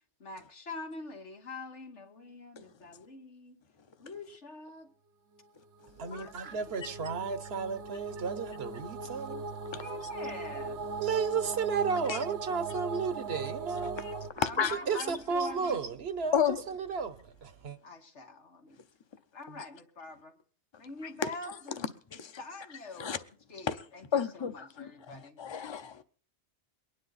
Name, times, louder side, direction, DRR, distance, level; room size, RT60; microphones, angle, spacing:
voice 1, 0.2-3.6 4.0-4.9 6.1-6.3 9.7-10.8 14.3-15.8 17.8-18.8 19.3-20.4 20.8-23.2 23.5-24.0 24.3-25.4, left 3 dB, 90° left, 2.1 m, -45 dB
sound 1, 5.8-14.3, right 3 dB, 80° right, 1.2 m, -39 dB
voice 2, 6.0-9.5 10.0-10.1 11.0-14.0 14.6-16.4 16.7-17.8, right 5 dB, 65° right, 1.1 m, -33 dB
voice 3, 14.0-14.8 16.3-16.6 19.5-19.6 21.0-21.1 22.1-22.3 23.0-23.2 23.6-23.8 24.1-26.0, left 7 dB, 30° left, 0.7 m, -32 dB
23.0 x 9.9 x 4.1 m
omnidirectional pair, 1.2 m